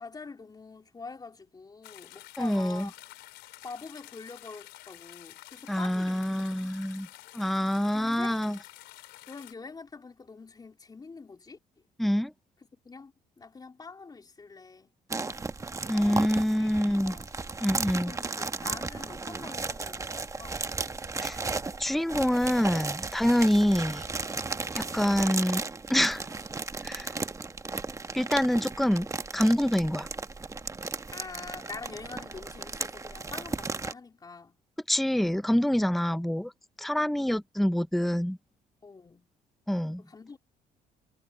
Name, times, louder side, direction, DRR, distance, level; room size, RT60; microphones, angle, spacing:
voice 1, 0.0-2.9 3.6-6.2 7.9-8.4 9.3-11.6 12.8-14.9 15.9-17.3 18.1-20.7 31.1-34.6 37.0-37.2 38.8-39.3 40.0-40.4, left 4 dB, 25° left, 4.0 m, -45 dB
sound 1, 1.8-9.5, left 17 dB, 90° left, 4.2 m, -50 dB
voice 2, 2.4-2.9 5.7-7.1 7.3-8.6 12.0-12.3 15.9-17.2 17.6-18.1 21.2-21.4 21.8-24.0 24.7-25.6 25.9-26.3 26.8-27.1 28.1-29.1 29.3-30.1 34.9-36.5 36.8-38.4 39.7-40.0, equal, ahead, 0.7 m, -26 dB
sound 2, 15.1-33.9, right 3 dB, 20° right, 1.1 m, -35 dB
cardioid pair, 110°, 17 cm